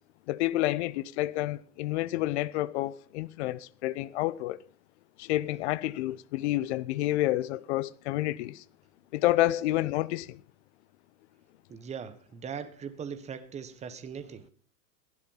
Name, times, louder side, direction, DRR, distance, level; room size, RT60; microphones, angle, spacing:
voice 1, 0.3-4.6 5.2-8.6 9.1-10.4, left 16 dB, 45° left, 0.8 m, -29 dB
voice 2, 11.7-14.5, right 7 dB, 15° right, 1.2 m, -40 dB
16.0 x 11.0 x 5.6 m
hypercardioid pair, 125°, 49 cm